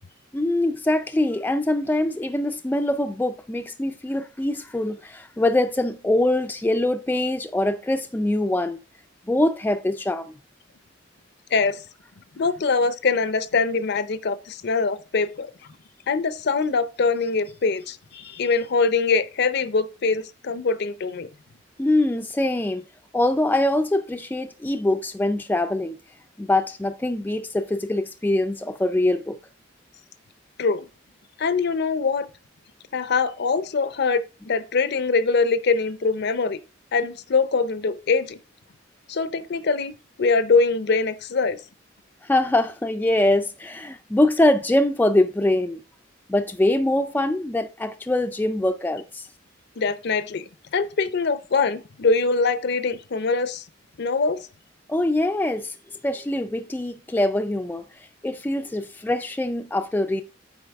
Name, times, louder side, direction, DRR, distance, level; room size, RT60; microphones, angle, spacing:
voice 1, 0.3-8.8 9.3-10.4 21.8-22.8 23.1-26.0 26.4-29.4 42.2-45.8 46.3-49.3 54.9-55.7 56.0-57.8 58.2-60.2, left 1 dB, 10° left, 0.3 m, -23 dB
voice 2, 11.5-11.8 12.4-15.5 16.1-21.3 30.6-30.8 31.4-32.3 32.9-36.6 36.9-38.4 39.1-41.6 49.8-53.6 54.0-54.5, left 4 dB, 60° left, 0.5 m, -23 dB
8.1 x 4.7 x 3.4 m
head